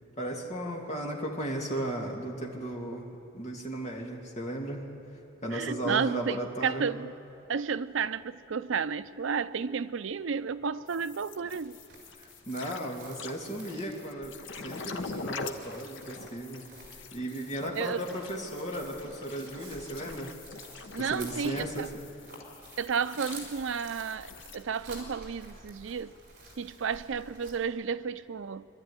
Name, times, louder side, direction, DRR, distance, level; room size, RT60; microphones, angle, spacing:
voice 1, 0.2-3.1 3.3-4.8 5.4-6.9 12.2-14.3 14.6-16.6 17.1-20.3 21.0-21.9, right 1 dB, 35° left, 2.5 m, -35 dB
voice 2, 5.5-7.1 7.5-11.8 17.7-18.0 20.9-21.9 22.8-26.1 26.6-28.7, right 6 dB, 80° right, 0.5 m, -32 dB
sound 1, 10.9-24.6, left 4 dB, 75° left, 1.0 m, -44 dB
Chirp tweet, 11.5-27.5, right 2 dB, 50° right, 5.1 m, -50 dB
24.5 x 12.5 x 9.6 m
head